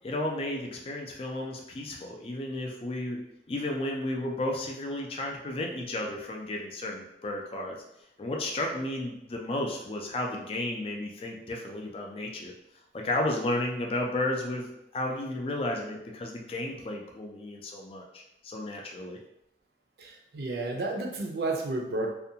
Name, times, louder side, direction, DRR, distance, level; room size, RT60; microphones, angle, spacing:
voice 1, 0.0-3.2 3.5-7.8 8.2-12.5 12.9-19.2, left 1 dB, 30° left, 0 dB, 0.3 m, -33 dB
voice 2, 20.0-22.1, right 2 dB, 65° right, 1 dB, 0.4 m, -31 dB
2.5 x 2.2 x 2.7 m, 0.84 s
head